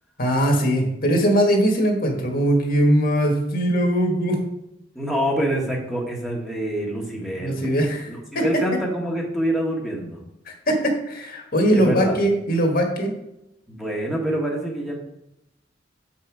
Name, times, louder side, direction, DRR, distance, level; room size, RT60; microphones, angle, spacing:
voice 1, 0.2-4.3 7.4-8.4 10.5-13.1, equal, 55° left, 2 dB, 1.7 m, -21 dB
voice 2, 4.9-7.7 8.1-10.2 11.7-12.2 13.7-15.0, right 1 dB, ahead, -2 dB, 1.4 m, -26 dB
7.1 x 5.7 x 4.8 m, 0.84 s
head